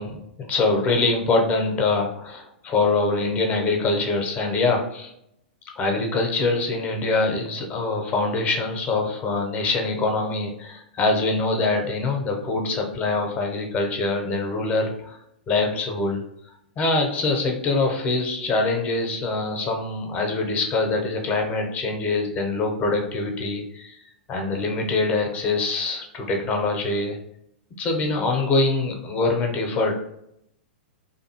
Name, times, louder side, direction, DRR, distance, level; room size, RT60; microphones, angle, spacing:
voice 1, 0.0-5.1 5.8-15.2 15.5-16.2 16.8-24.0 24.3-27.2 27.8-30.0, left 3 dB, 25° left, 2 dB, 0.6 m, -24 dB
2.5 x 2.4 x 2.8 m, 0.76 s
figure-of-eight pair, 105°, 5 cm